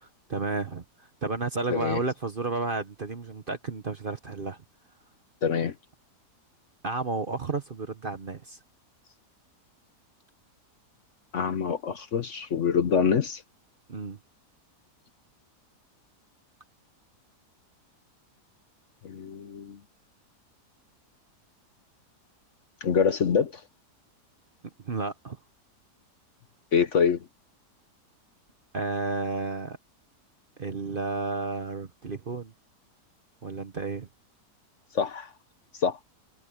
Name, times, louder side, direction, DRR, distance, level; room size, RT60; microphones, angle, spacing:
voice 1, 0.0-4.6 6.8-8.6 13.9-14.2 24.8-25.4 28.7-29.8 30.6-32.5 33.4-34.1, right 3 dB, 40° right, 1.0 m, -32 dB
voice 2, 1.7-2.0 5.4-5.7 11.3-13.4 19.0-19.8 22.8-23.6 26.7-27.3 34.9-35.3 35.8-36.0, left 6 dB, 55° left, 1.1 m, -25 dB
omnidirectional pair, 1.8 m